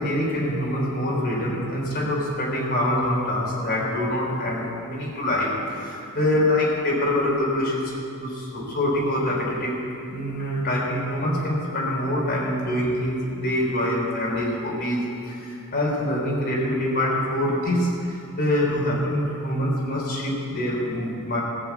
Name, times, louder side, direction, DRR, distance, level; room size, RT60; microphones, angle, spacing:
voice 1, 0.0-7.9 8.2-9.8 10.1-21.4, left 1 dB, 50° left, -4 dB, 3.7 m, -25 dB
16.0 x 7.0 x 8.3 m, 2.6 s
head